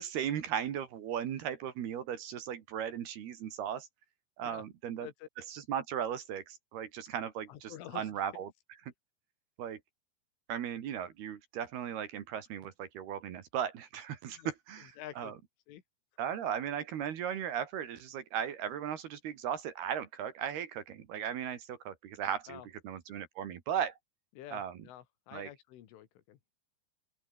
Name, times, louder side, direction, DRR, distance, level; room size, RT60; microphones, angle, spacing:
voice 1, 0.0-3.9 4.4-5.1 5.5-8.5 9.6-9.8 10.5-14.9 15.2-15.3 16.2-23.9 24.5-24.8 25.3-25.5, right 9 dB, 60° right, 3.5 m, -37 dB
voice 2, 7.5-8.1 14.4-14.5 14.8-15.4 15.7-15.8 22.5-22.7 24.3-26.6, left 12 dB, 80° left, 4.3 m, -48 dB
open air
omnidirectional pair, 5.7 m